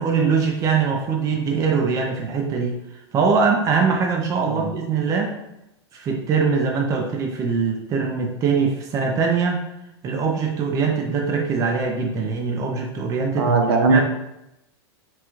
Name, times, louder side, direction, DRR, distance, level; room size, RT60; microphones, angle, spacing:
voice 1, 0.0-2.8 3.1-5.3 5.9-9.6 10.0-13.5 13.9-14.0, right 5 dB, 25° right, 2 dB, 0.5 m, -22 dB
voice 2, 13.3-14.0, right 3 dB, 65° right, 4 dB, 0.8 m, -19 dB
5.8 x 2.3 x 3.1 m, 0.86 s
hypercardioid pair, 135°, 14 cm